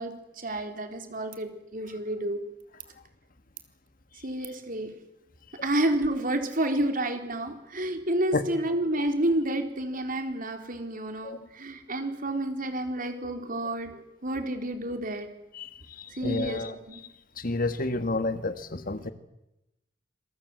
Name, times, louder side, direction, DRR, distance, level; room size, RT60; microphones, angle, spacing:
voice 1, 0.0-2.4 4.2-4.9 5.6-15.3 16.2-17.0, right 1 dB, 50° right, 6 dB, 3.9 m, -30 dB
voice 2, 16.0-16.8 17.4-19.1, left 2 dB, 50° left, 10 dB, 1.7 m, -30 dB
27.0 x 23.5 x 7.9 m, 0.90 s
head